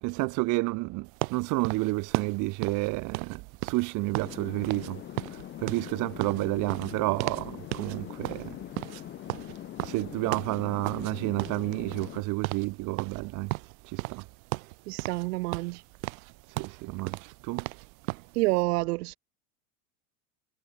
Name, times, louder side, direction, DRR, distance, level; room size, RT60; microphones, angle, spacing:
voice 1, 0.0-8.6 9.8-13.5 13.8-14.3 16.5-17.7, right 24 dB, 40° right, 1.9 m, -30 dB
sound 1, 1.2-4.4 4.6-4.9 5.2-7.5 7.7-8.0 8.2-11.1 11.4-12.2 12.4-12.7 13.0-14.3 14.5-15.3 15.5-18.3, right 22 dB, 65° right, 0.9 m, -35 dB
sound 2, 4.2-12.2, left 12 dB, 25° left, 1.4 m, -42 dB
voice 2, 14.9-15.8 18.3-19.2, right 21 dB, 85° right, 0.6 m, -28 dB
supercardioid pair, 155°, 45 cm